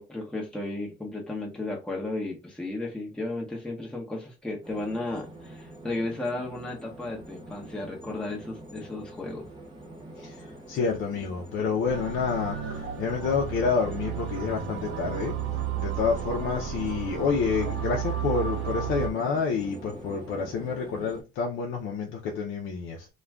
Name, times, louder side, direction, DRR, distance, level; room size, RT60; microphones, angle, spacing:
voice 1, 0.0-9.4, left 2 dB, 5° left, 0.8 m, -34 dB
sound 1, 4.6-21.2, right 1 dB, 25° right, 0.9 m, -45 dB
voice 2, 10.2-15.3 15.8-23.1, left 5 dB, 90° left, 0.5 m, -28 dB
sound 2, 11.9-19.1, right 8 dB, 90° right, 0.6 m, -33 dB
2.4 x 2.2 x 3.3 m
cardioid pair, 90°, 20 cm